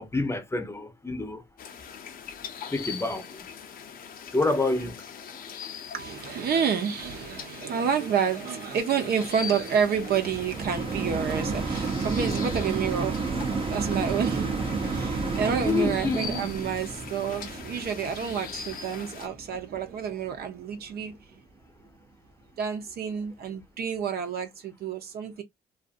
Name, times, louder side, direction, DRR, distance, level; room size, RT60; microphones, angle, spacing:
voice 1, 0.0-1.4 2.7-3.5 4.3-5.0 15.6-16.5, left 3 dB, 15° left, 0.7 m, -28 dB
sound 1, 1.6-19.3, left 7 dB, 55° left, 0.6 m, -42 dB
voice 2, 5.9-21.4 22.6-25.4, right 7 dB, 60° right, 0.8 m, -29 dB
sound 2, 9.2-20.5 21.1-21.2, right 4 dB, 30° right, 0.7 m, -31 dB
2.5 x 2.5 x 2.4 m
cardioid pair, 105°, 18 cm